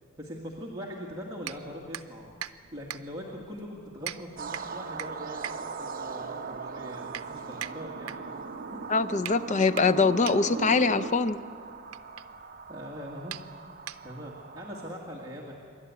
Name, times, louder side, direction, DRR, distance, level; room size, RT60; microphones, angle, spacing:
voice 1, 0.2-8.3 12.7-13.4 14.0-15.5, equal, 20° right, -4 dB, 2.0 m, -41 dB
sound 1, 1.4-14.4, right 10 dB, 85° right, 0.6 m, -43 dB
sound 2, 3.0-11.1, right 3 dB, 60° right, 1.4 m, -41 dB
sound 3, 4.4-14.9, right 5 dB, 40° right, 0.9 m, -41 dB
voice 2, 8.9-11.4, left 4 dB, 35° left, 12 dB, 0.6 m, -23 dB
26.5 x 12.0 x 9.6 m, 2.3 s
head